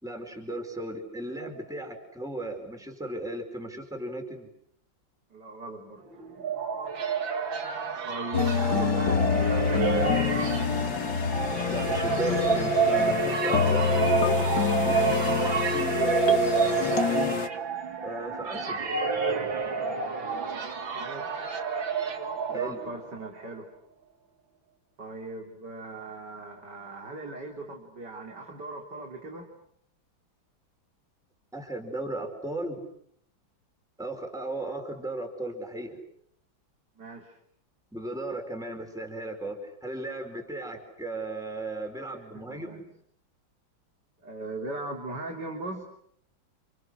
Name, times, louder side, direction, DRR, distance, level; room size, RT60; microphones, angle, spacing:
voice 1, 0.0-4.5 11.7-17.4 18.0-18.9 22.4-22.8 31.5-32.8 34.0-36.0 37.9-42.8, right 2 dB, ahead, 3 dB, 4.8 m, -36 dB
voice 2, 5.3-6.0 8.1-10.6 21.0-21.5 22.5-23.7 25.0-29.5 37.0-37.4 42.1-42.8 44.2-45.8, right 2 dB, 60° right, 2 dB, 3.7 m, -39 dB
sound 1, 6.1-23.1, right 6 dB, 85° right, 2.8 m, -29 dB
sound 2, 8.3-17.5, left 6 dB, 65° left, 2.0 m, -26 dB
30.0 x 29.5 x 6.5 m, 0.69 s
omnidirectional pair, 2.1 m